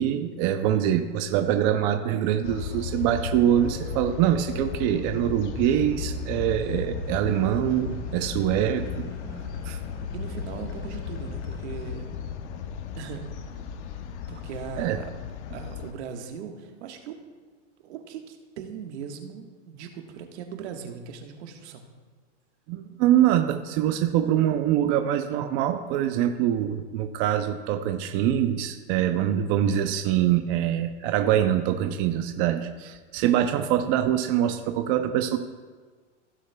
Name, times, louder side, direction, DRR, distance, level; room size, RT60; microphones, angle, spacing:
voice 1, 0.0-8.9 9.6-9.8 14.8-15.0 22.7-35.4, right 11 dB, 30° right, 7 dB, 0.4 m, -24 dB
sound 1, 2.4-15.9, left 6 dB, 65° left, 0.8 m, -35 dB
sound 2, 7.0-12.6, left 1 dB, 25° left, 1.2 m, -46 dB
voice 2, 10.1-12.1 12.9-13.3 14.3-15.1 15.5-17.2 17.8-21.9, right 7 dB, 65° right, 4 dB, 1.4 m, -39 dB
16.0 x 6.4 x 2.2 m, 1.5 s
supercardioid pair, 140°, 37 cm